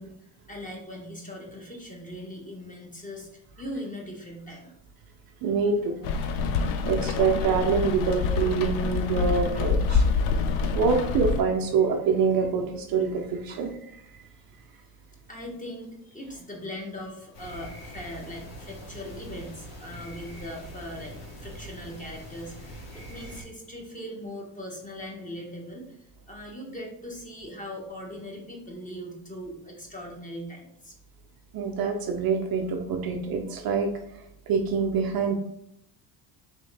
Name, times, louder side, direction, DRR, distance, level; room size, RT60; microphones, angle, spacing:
voice 1, 0.0-4.8 6.2-6.5 7.4-7.6 9.3-9.6 9.9-10.1 13.5-13.7 15.3-30.9, left 1 dB, 15° left, 0 dB, 1.0 m, -40 dB
voice 2, 5.4-6.0 6.8-9.8 10.7-13.7 31.5-33.9 34.5-35.4, right 5 dB, 45° right, 3 dB, 0.6 m, -25 dB
Rain, 6.0-11.4, left 5 dB, 80° left, 0.6 m, -26 dB
sound 1, 17.3-23.4, equal, 50° left, 1.5 m, -43 dB
3.5 x 3.1 x 3.3 m, 0.76 s
supercardioid pair, 95°, 48 cm